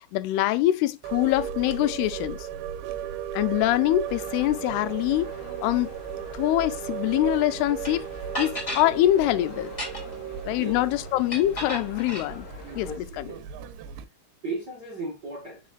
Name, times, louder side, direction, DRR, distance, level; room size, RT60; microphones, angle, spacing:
voice 1, 0.1-2.4 3.3-5.3 5.6-5.9 6.3-8.1 8.4-9.7 10.5-12.4 12.8-12.9 13.2-13.3, left 15 dB, 85° left, 2.6 m, -24 dB
sound 1, 1.0-14.1, right 9 dB, 85° right, 2.6 m, -36 dB
sound 2, 4.0-13.0, left 5 dB, 65° left, 1.3 m, -46 dB
sound 3, 7.8-7.9 8.3-8.9 9.6-10.2 11.3-12.3, left 1 dB, 10° left, 2.0 m, -33 dB
voice 2, 12.7-13.5 14.4-15.6, right 2 dB, 50° right, 1.2 m, -35 dB
8.4 x 5.1 x 2.4 m
omnidirectional pair, 4.5 m